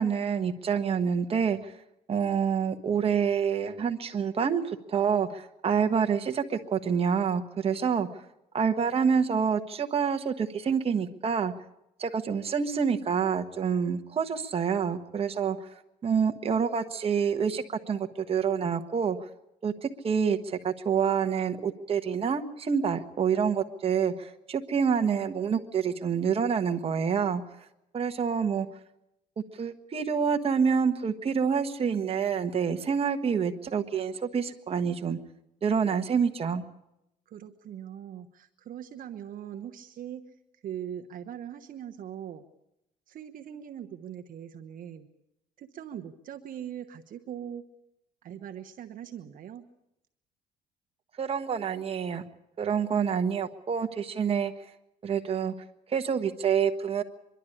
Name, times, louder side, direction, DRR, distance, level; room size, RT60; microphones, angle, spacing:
voice 1, 0.0-1.7 2.1-8.1 8.5-11.5 12.0-15.6 16.0-19.2 19.6-27.4 27.9-28.7 29.6-35.2 35.6-36.6 51.2-52.2 52.6-54.5 55.0-55.5 55.9-57.0, right 6 dB, 35° right, 5 dB, 1.4 m, -27 dB
voice 2, 37.3-40.3 40.6-42.4 43.1-45.1 45.6-47.7 48.2-49.6, right 9 dB, 55° right, 5 dB, 1.1 m, -41 dB
24.5 x 11.5 x 9.9 m, 0.85 s
cardioid pair, 110°, 17 cm